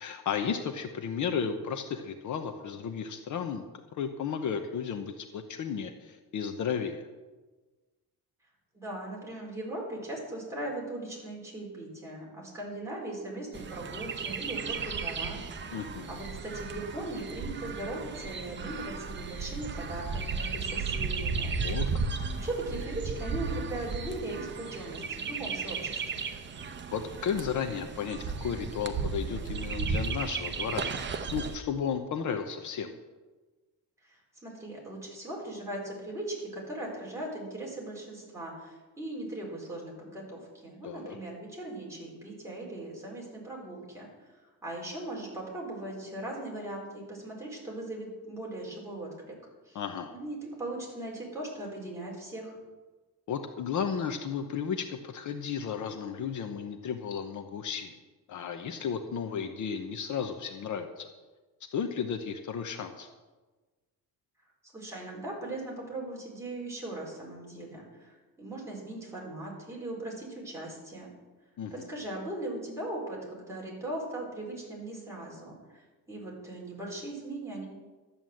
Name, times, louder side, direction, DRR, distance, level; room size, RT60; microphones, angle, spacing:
voice 1, 0.0-3.6 3.9-7.0 15.7-16.2 21.6-22.0 26.9-32.9 40.8-41.1 49.7-50.1 53.3-58.0 58.3-61.1 61.7-63.1 71.6-71.9, left 7 dB, 55° left, 6 dB, 0.9 m, -34 dB
voice 2, 8.7-15.4 16.1-21.8 22.3-26.2 34.0-44.1 44.6-49.3 49.6-49.8 50.1-52.6 64.6-71.1 71.7-75.8 76.1-77.7, right 1 dB, 10° right, -4 dB, 4.4 m, -39 dB
Chirp tweet, 13.5-31.6, right 5 dB, 30° right, 0.8 m, -35 dB
12.5 x 8.9 x 7.7 m, 1.3 s
cardioid pair, 170°, 36 cm